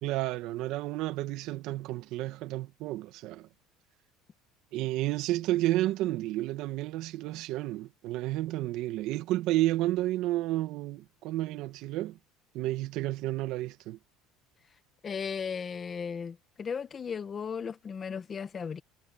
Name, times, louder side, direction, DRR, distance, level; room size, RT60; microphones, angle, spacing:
voice 1, 0.0-3.5 4.7-12.2 12.5-14.0, right 16 dB, 65° right, 1.4 m, -31 dB
voice 2, 15.0-18.8, left 6 dB, 25° left, 1.3 m, -36 dB
cardioid pair, 140°, 0 cm